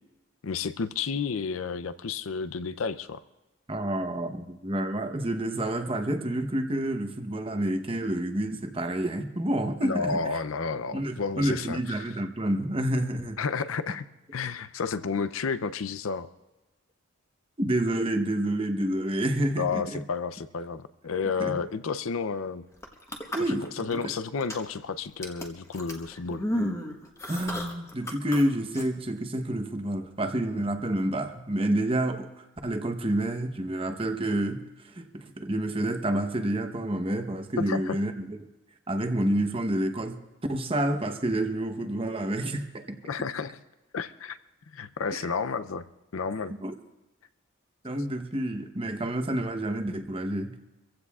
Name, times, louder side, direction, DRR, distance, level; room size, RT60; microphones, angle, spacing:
voice 1, 0.4-3.2 9.8-12.1 13.4-14.1 14.3-16.3 19.5-22.6 23.5-26.4 37.6-38.0 43.1-43.6 43.9-44.4 44.7-45.9 46.1-46.6, left 5 dB, 80° left, 14 dB, 0.5 m, -31 dB
voice 2, 3.7-10.2 10.9-13.4 17.6-20.0 21.4-21.5 23.3-24.1 27.3-34.6 34.8-38.4 38.9-40.2 40.5-43.0 45.1-45.2 46.6-46.7 47.8-50.6, right 1 dB, 25° right, 6 dB, 0.9 m, -29 dB
sound 1, 22.7-24.0 24.4-24.8 25.2-28.4 28.7-28.8, left 1 dB, 15° left, 1.2 m, -33 dB
25.0 x 15.5 x 2.4 m, 1.0 s
head